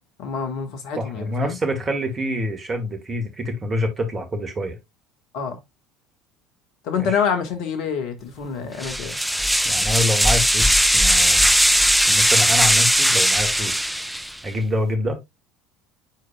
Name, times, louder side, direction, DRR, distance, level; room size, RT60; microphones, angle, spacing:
voice 1, 0.2-1.6 5.3-5.6 6.8-9.2, left 6 dB, 60° left, 1.5 m, -26 dB
voice 2, 1.0-4.8 7.0-7.2 9.7-11.5 12.1-13.9 14.4-15.2, left 1 dB, 25° right, 2.0 m, -26 dB
sound 1, 8.8-14.4, equal, ahead, 0.5 m, -18 dB
9.0 x 4.6 x 2.3 m
figure-of-eight pair, 65°, 0 cm